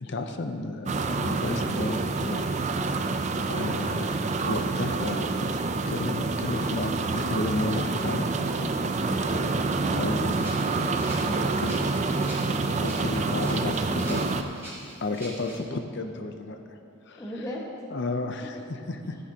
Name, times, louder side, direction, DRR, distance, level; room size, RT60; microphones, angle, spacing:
voice 1, 0.0-2.5 3.5-5.5 5.9-8.3 9.9-10.4 11.6-11.8 12.7-14.7 15.0-16.6 17.1-17.2 17.9-19.2, left 2 dB, 55° left, 6 dB, 0.6 m, -32 dB
sound 1, 0.9-14.4, right 3 dB, 35° right, 0.4 m, -27 dB
voice 2, 9.1-10.0 11.2-12.2 17.2-17.6, equal, 15° left, -3 dB, 1.4 m, -37 dB
Rattle (instrument), 10.3-15.6, right 1 dB, 10° right, 2.8 m, -44 dB
14.5 x 11.0 x 2.9 m, 2.6 s
head